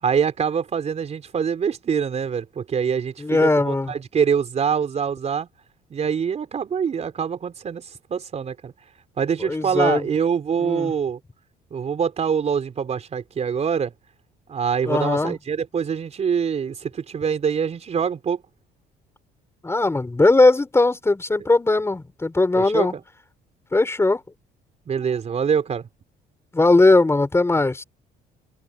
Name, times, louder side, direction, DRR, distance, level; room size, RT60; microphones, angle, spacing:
voice 1, 0.0-5.5 5.9-8.7 9.2-11.2 11.7-13.9 14.5-18.4 22.6-23.0 24.9-25.9, right 7 dB, 40° right, 4.3 m, -24 dB
voice 2, 3.2-3.9 9.4-10.1 10.6-10.9 14.8-15.3 19.6-22.9 23.7-24.2 26.5-27.8, left 2 dB, 15° left, 6.4 m, -19 dB
open air
cardioid pair, 110°, 17 cm